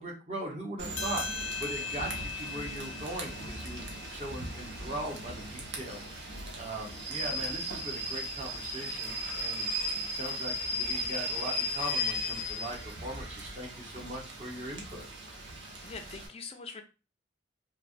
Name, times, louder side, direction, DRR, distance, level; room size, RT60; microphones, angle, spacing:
voice 1, 0.0-15.1, right 1 dB, 35° right, -2 dB, 0.8 m, -40 dB
Rain / Train, 0.8-16.3, left 1 dB, 65° right, 0.7 m, -37 dB
sound 1, 0.9-5.8, left 7 dB, 85° left, 0.5 m, -41 dB
voice 2, 15.8-16.8, left 4 dB, 30° left, 6 dB, 0.3 m, -43 dB
3.1 x 2.1 x 2.5 m, 0.33 s
head